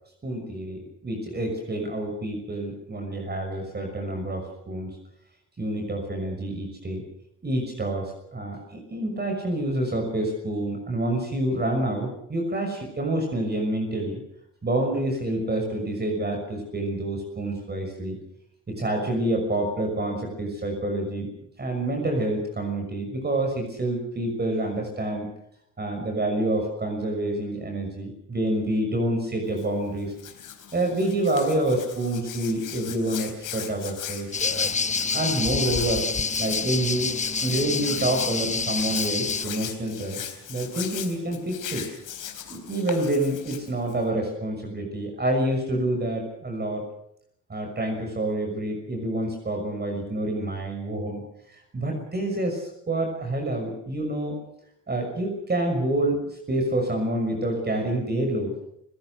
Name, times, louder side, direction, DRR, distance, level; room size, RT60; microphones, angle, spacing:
voice 1, 0.2-5.0 5.6-7.0 7.4-14.2 14.6-18.2 18.7-21.3 21.6-25.3 25.8-30.1 30.7-34.7 35.1-36.1 36.4-40.2 40.5-41.9 42.5-46.8 47.5-54.4 54.9-58.5, right 1 dB, 30° right, 3 dB, 6.2 m, -27 dB
Hands, 29.4-44.1, left 10 dB, 90° left, 3.9 m, -39 dB
sound 1, 34.3-39.5, left 4 dB, 25° left, 0.8 m, -27 dB
29.5 x 17.5 x 6.6 m, 0.75 s
cardioid pair, 110°, 31 cm